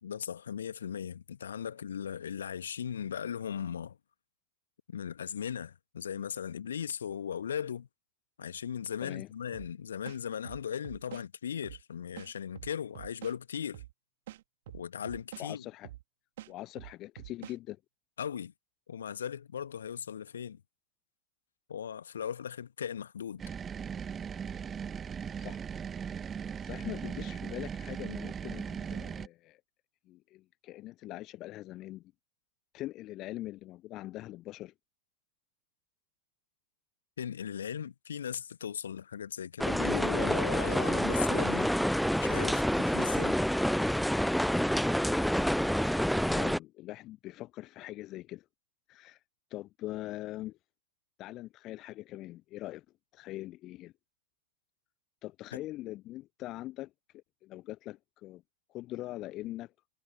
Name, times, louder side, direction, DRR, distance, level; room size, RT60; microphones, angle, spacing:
voice 1, 0.0-4.0 4.9-7.9 8.4-13.8 14.7-15.6 18.2-18.5 18.9-20.6 21.7-23.4 37.2-41.7 42.2-43.4, left 8 dB, 65° left, 1.7 m, -38 dB
sound 1, 9.5-9.7 10.0-11.3 11.6-11.8 12.2-13.4 13.7-13.9 14.3-15.5 15.8-16.0 16.4-17.6, right 15 dB, 55° right, 2.5 m, -46 dB
voice 2, 15.4-15.9 16.5-17.8 25.4-25.6 26.6-29.6 30.1-32.0 32.7-34.7 46.1-48.4 48.9-49.2 49.5-50.6 51.2-52.8 53.1-53.9 55.2-58.4 58.7-59.7, left 16 dB, 35° left, 0.7 m, -42 dB
sound 2, 23.4-29.3, right 7 dB, 20° right, 1.3 m, -38 dB
sound 3, 39.6-46.6, equal, ahead, 0.5 m, -28 dB
figure-of-eight pair, 90°, 0 cm